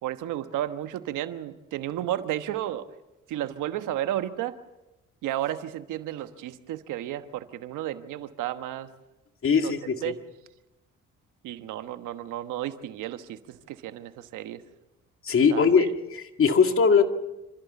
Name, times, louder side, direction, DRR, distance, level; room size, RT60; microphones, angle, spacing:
voice 1, 0.0-2.9 3.3-4.5 5.2-8.9 9.6-9.7 10.0-10.2 11.4-14.6 15.5-15.8, right 12 dB, 90° right, 10 dB, 1.2 m, -32 dB
voice 2, 9.4-10.1 15.2-17.0, left 5 dB, 45° left, 6 dB, 2.1 m, -21 dB
27.0 x 14.5 x 7.0 m, 0.99 s
cardioid pair, 90°, 30 cm